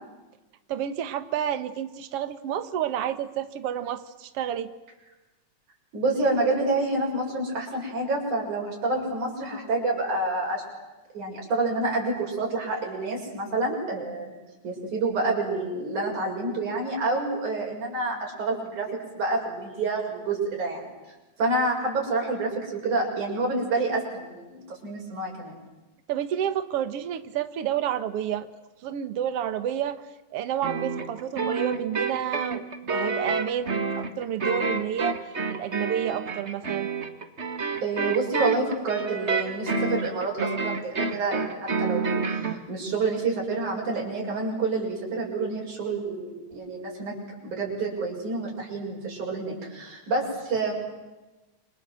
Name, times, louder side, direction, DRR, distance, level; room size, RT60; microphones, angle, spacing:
voice 1, 0.7-4.7 26.1-28.5 28.8-30.0 30.3-32.6 32.9-36.9, right 10 dB, 55° right, 10 dB, 2.2 m, -30 dB
voice 2, 5.9-10.6 11.1-14.4 14.6-18.9 19.1-20.9 21.4-25.6 37.8-47.1 47.4-50.7, right 2 dB, 90° right, -3 dB, 8.3 m, -28 dB
sound 1, 30.6-42.6, right 4 dB, 30° right, 1.5 m, -29 dB
29.0 x 26.0 x 7.8 m, 1.1 s
omnidirectional pair, 3.4 m